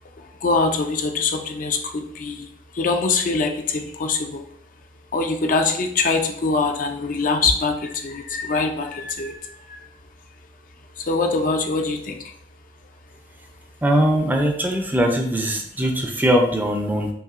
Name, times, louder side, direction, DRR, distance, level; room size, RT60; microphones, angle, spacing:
voice 1, 0.4-2.5 2.8-4.4 5.1-9.4 11.1-12.2, left 3 dB, 50° left, 5 dB, 0.4 m, -23 dB
voice 2, 13.8-17.1, equal, 10° right, 2 dB, 0.4 m, -20 dB
5.5 x 2.6 x 2.4 m, 0.66 s
head